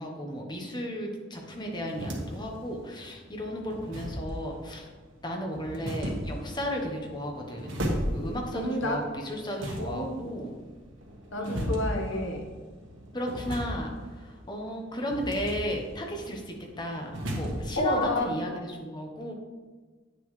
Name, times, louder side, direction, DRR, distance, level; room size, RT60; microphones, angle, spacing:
voice 1, 0.0-4.9 5.2-7.7 8.1-10.6 11.4-11.7 12.1-12.3 13.1-19.3, equal, 25° left, 1 dB, 1.1 m, -34 dB
sound 1, 1.4-18.1, equal, 90° right, 1.5 m, -37 dB
voice 2, 8.5-9.0 9.8-10.4 11.3-12.5 17.8-18.3, left 1 dB, 85° left, 1 dB, 1.3 m, -30 dB
8.6 x 6.9 x 3.3 m, 1.4 s
head